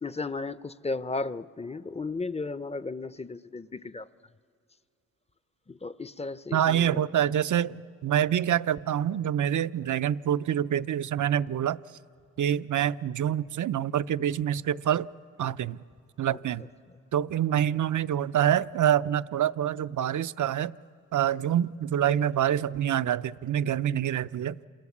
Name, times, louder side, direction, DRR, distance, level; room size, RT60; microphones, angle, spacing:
voice 1, 0.0-4.1 5.7-7.1 16.3-16.7, left 3 dB, 20° left, 0.6 m, -35 dB
voice 2, 6.5-11.8 12.4-15.1 15.4-15.8 16.2-16.7 17.1-20.7 21.1-24.6, right 10 dB, 65° right, 0.6 m, -26 dB
28.5 x 26.5 x 7.3 m
cardioid pair, 75°, 33 cm